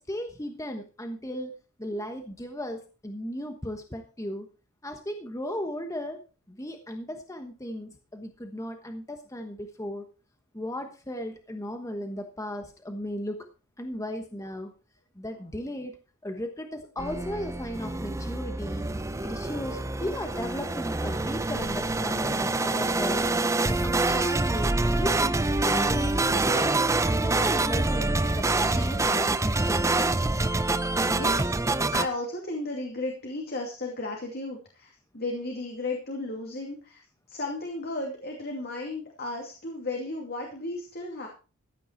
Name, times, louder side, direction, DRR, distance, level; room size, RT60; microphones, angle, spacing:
voice 1, 0.0-1.5 1.8-4.5 4.8-6.2 6.5-10.0 10.5-13.4 13.8-14.7 15.2-15.9 16.2-18.9 19.2-23.3 23.7-26.7 27.2-29.9, equal, 15° left, 5 dB, 1.2 m, -36 dB
sound 1, 17.0-32.1, right 2 dB, 15° right, 0.5 m, -26 dB
voice 2, 30.5-31.5 31.9-37.0 37.3-41.3, left 2 dB, 45° left, 1 dB, 2.5 m, -34 dB
15.0 x 9.3 x 4.5 m, 0.34 s
head